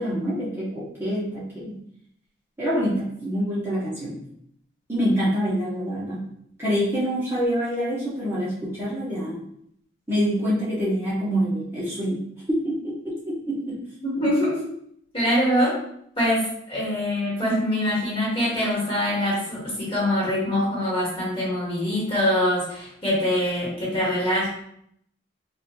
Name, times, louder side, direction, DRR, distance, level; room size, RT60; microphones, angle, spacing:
voice 1, 0.0-1.8 2.6-4.2 4.9-6.3 6.6-9.4 10.1-13.9, equal, 15° right, -10 dB, 0.8 m, -26 dB
voice 2, 14.0-14.6 15.1-15.7 16.2-24.5, left 1 dB, 25° left, -6 dB, 1.3 m, -24 dB
4.0 x 2.4 x 2.4 m, 0.70 s
head